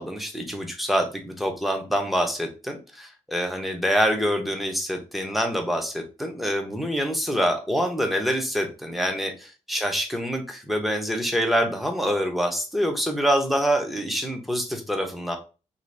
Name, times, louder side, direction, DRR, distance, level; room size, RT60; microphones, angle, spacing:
voice 1, 0.0-15.4, equal, ahead, 4 dB, 0.6 m, -26 dB
2.9 x 2.6 x 3.2 m, 0.33 s
wide cardioid pair, 150°, 11 cm